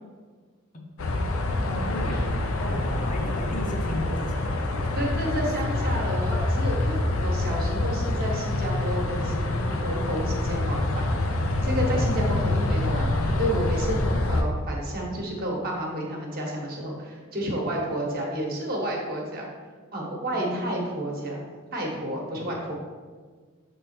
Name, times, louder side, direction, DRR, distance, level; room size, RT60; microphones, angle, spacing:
sound 1, 1.0-14.4, left 2 dB, 80° left, 0.7 m, -26 dB
voice 1, 1.7-5.5 5.7-5.8 6.2-6.3 12.0-12.4 20.3-20.6 22.3-22.7, left 1 dB, 35° left, 0 dB, 0.8 m, -35 dB
voice 2, 4.9-19.5 19.9-21.4 21.7-22.7, right 1 dB, 45° right, -2 dB, 1.2 m, -31 dB
6.8 x 3.7 x 4.3 m, 1.5 s
head